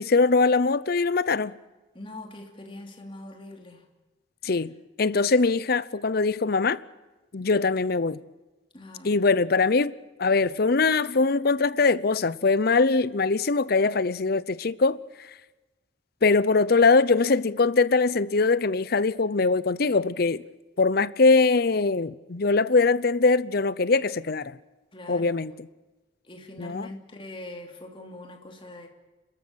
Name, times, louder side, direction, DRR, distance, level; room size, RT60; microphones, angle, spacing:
voice 1, 0.0-1.5 4.4-4.7 5.0-6.8 7.3-8.2 9.0-9.9 10.2-15.0 16.2-20.4 20.8-24.6 25.1-25.5 26.6-26.9, left 4 dB, 55° left, 0.7 m, -22 dB
voice 2, 1.9-3.8 8.7-9.3 24.9-25.4 26.2-28.9, left 2 dB, 30° left, 3.0 m, -42 dB
29.5 x 13.5 x 8.7 m
head